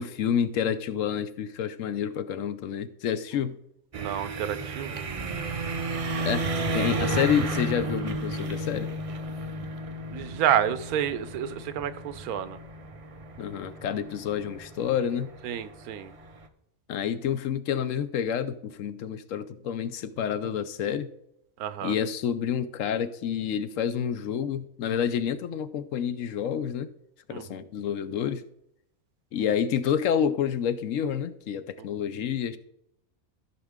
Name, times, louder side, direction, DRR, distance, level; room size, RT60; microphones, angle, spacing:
voice 1, 0.0-3.6 6.2-6.4 6.7-8.9 13.4-15.3 16.9-21.1 21.8-26.9 27.3-28.4 29.3-32.6, left 8 dB, 70° left, 13 dB, 0.9 m, -28 dB
sound 1, 3.9-16.5, right 2 dB, 55° right, 0.3 m, -33 dB
voice 2, 3.9-5.1 10.1-12.6 15.4-16.1 21.6-21.9 27.3-27.6, right 10 dB, 90° right, 13 dB, 1.2 m, -29 dB
14.0 x 5.9 x 3.6 m, 0.79 s
omnidirectional pair, 1.5 m